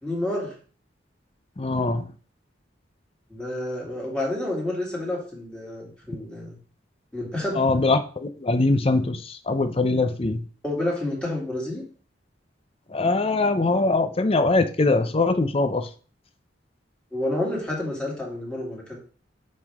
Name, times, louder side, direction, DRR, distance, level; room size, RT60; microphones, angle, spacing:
voice 1, 0.0-0.5 3.3-6.6 7.1-7.6 10.6-11.8 17.1-19.0, left 1 dB, 5° left, -3 dB, 2.7 m, -29 dB
voice 2, 1.6-2.1 7.5-10.4 12.9-15.9, left 3 dB, 30° left, 10 dB, 0.6 m, -22 dB
7.7 x 5.4 x 3.5 m, 0.40 s
head